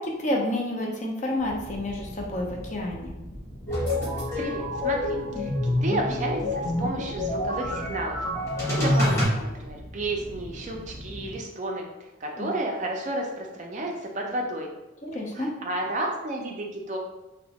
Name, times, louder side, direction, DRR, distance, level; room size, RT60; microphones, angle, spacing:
voice 1, 0.0-3.1 12.4-12.5 15.0-15.5, left 1 dB, 35° left, -1 dB, 0.5 m, -29 dB
sound 1, 1.4-11.4, equal, 15° right, 0.7 m, -42 dB
sound 2, 3.7-9.2, left 1 dB, 15° left, 0.9 m, -27 dB
voice 2, 4.4-8.2 8.7-11.9 12.2-14.7 15.3-17.0, right 1 dB, 35° right, 0 dB, 0.4 m, -31 dB
2.9 x 2.1 x 2.8 m, 1.0 s
head